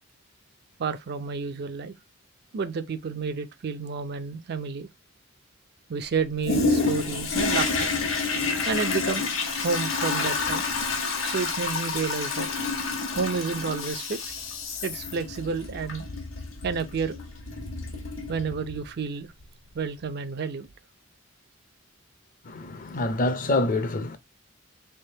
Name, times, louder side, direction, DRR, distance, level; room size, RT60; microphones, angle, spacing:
voice 1, 0.8-1.9 2.5-4.9 5.9-7.9 8.6-9.3 9.6-10.6 11.2-12.5 13.2-14.2 14.8-16.0 16.6-17.2 18.3-19.3 19.7-20.7, right 5 dB, 55° right, 0.4 m, -30 dB
Toilet flush, 6.4-18.9 19.4-19.5, left 4 dB, 75° left, 1.2 m, -29 dB
voice 2, 22.4-24.2, left 2 dB, 40° left, 0.6 m, -26 dB
3.7 x 3.4 x 2.7 m
head